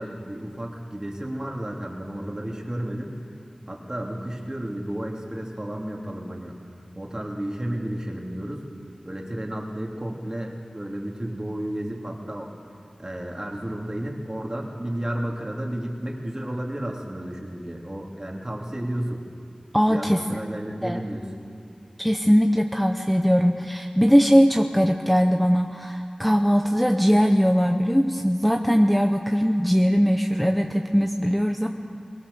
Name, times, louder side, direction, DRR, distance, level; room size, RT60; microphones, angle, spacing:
voice 1, 0.0-3.1 3.7-6.5 7.0-8.6 9.0-12.5 13.0-19.2 19.9-21.3, right 1 dB, 30° right, 0 dB, 3.0 m, -32 dB
voice 2, 19.7-20.2 20.8-21.0 22.0-31.7, equal, ahead, 4 dB, 0.9 m, -20 dB
22.5 x 19.5 x 7.0 m, 2.3 s
wide cardioid pair, 55°, 2 cm